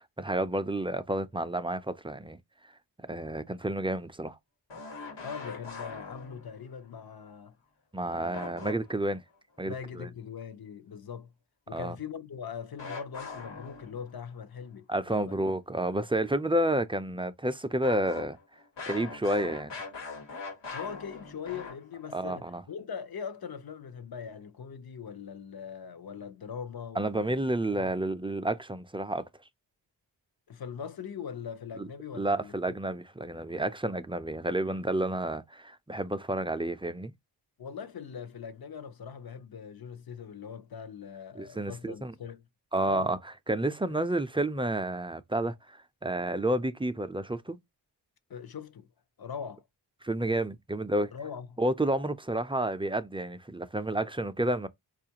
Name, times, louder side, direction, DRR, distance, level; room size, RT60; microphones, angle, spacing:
voice 1, 0.0-2.4 3.1-4.4 7.9-9.2 9.6-10.1 11.7-12.0 14.9-18.4 18.9-19.7 22.1-22.6 27.0-29.2 31.8-31.9 32.1-37.1 41.4-42.1 42.7-43.2 43.5-47.6 50.0-51.1 51.6-54.7, right 1 dB, 15° right, 0.4 m, -30 dB
sound 1, 4.7-6.7 8.3-9.2 12.8-14.2 17.8-22.2, left 4 dB, 85° left, 1.3 m, -42 dB
voice 2, 5.2-7.6 8.1-8.5 9.6-11.3 11.7-15.4 20.7-27.4 27.7-28.0 30.5-32.5 37.6-42.5 42.8-43.2 43.8-44.0 48.3-48.9 49.2-49.6 51.1-51.6, left 7 dB, 60° left, 0.7 m, -41 dB
4.3 x 2.4 x 2.8 m
wide cardioid pair, 70°, 43 cm